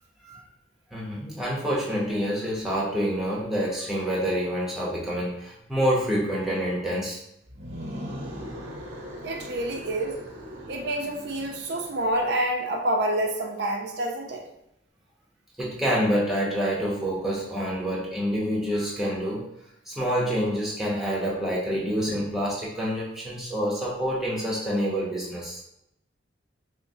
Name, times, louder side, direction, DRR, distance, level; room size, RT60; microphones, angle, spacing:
voice 1, 0.9-7.2 15.6-19.5 19.9-25.6, equal, ahead, -5 dB, 0.8 m, -27 dB
sound 1, 7.5-12.5, equal, 85° right, 0.9 m, -40 dB
voice 2, 9.2-10.2 10.7-14.4, right 1 dB, 60° right, 1 dB, 0.5 m, -28 dB
5.7 x 2.1 x 2.7 m, 0.81 s
head